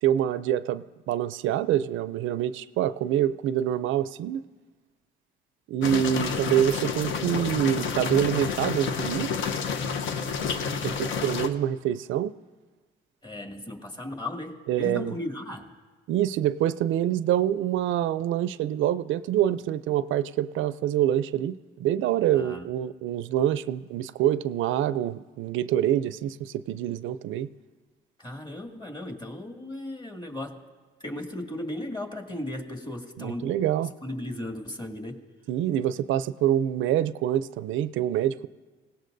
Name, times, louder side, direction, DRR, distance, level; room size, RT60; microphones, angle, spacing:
voice 1, 0.0-4.4 5.7-9.3 10.8-12.3 14.7-15.1 16.1-27.5 33.2-33.9 35.5-38.5, right 11 dB, 85° right, 15 dB, 0.4 m, -26 dB
sound 1, 5.8-11.5, left 5 dB, 75° left, 0.9 m, -29 dB
voice 2, 13.2-15.8 22.3-22.6 28.2-30.6 31.0-33.5 34.0-35.2, left 1 dB, 25° left, 3 dB, 2.1 m, -36 dB
25.5 x 17.5 x 2.6 m, 1.3 s
cardioid pair, 90°, 20 cm